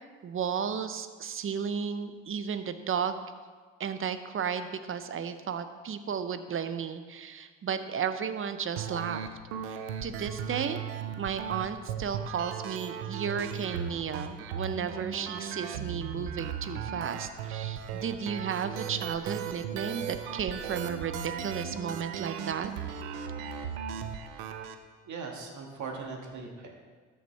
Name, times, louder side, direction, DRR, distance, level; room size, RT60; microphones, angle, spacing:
voice 1, 0.2-3.2 3.8-9.2 9.7-10.8 11.2-22.7, right 7 dB, 35° right, 10 dB, 0.7 m, -34 dB
sound 1, 8.8-24.7, right 8 dB, 80° right, 0.7 m, -37 dB
voice 2, 25.1-26.8, right 4 dB, 55° right, 1 dB, 1.8 m, -40 dB
13.0 x 5.5 x 3.4 m, 1.5 s
hypercardioid pair, 60°, 35 cm